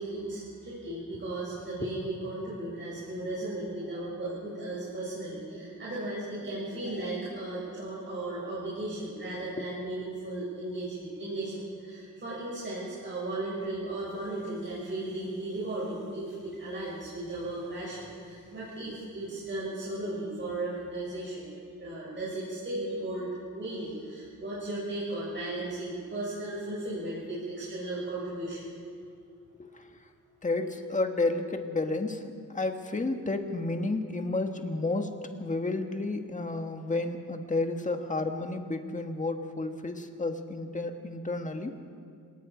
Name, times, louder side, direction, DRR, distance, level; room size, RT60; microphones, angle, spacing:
voice 1, 0.0-21.5 21.8-23.3 23.5-28.6, right 2 dB, 35° right, -8 dB, 6.8 m, -36 dB
voice 2, 9.3-9.7 29.6-30.0 30.4-41.7, left 2 dB, 20° left, 5 dB, 1.7 m, -31 dB
28.0 x 19.0 x 5.1 m, 2.3 s
wide cardioid pair, 120°, 34 cm